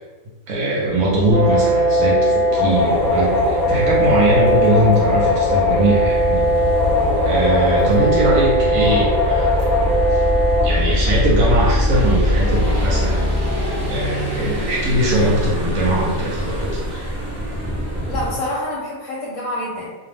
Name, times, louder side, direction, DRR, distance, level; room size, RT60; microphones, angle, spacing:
voice 1, 0.5-6.4 7.2-10.2 10.6-13.2 13.8-17.1, right 1 dB, 85° right, -4 dB, 1.1 m, -20 dB
sound 1, 0.8-7.3, left 4 dB, 30° left, 0.8 m, -30 dB
sound 2, 1.3-10.6, equal, 60° right, 1.2 m, -19 dB
sound 3, 2.7-18.4, equal, 15° right, 0.6 m, -23 dB
voice 2, 18.0-19.9, left 1 dB, 70° left, -5 dB, 0.9 m, -27 dB
2.5 x 2.0 x 3.3 m, 1.3 s
omnidirectional pair, 1.5 m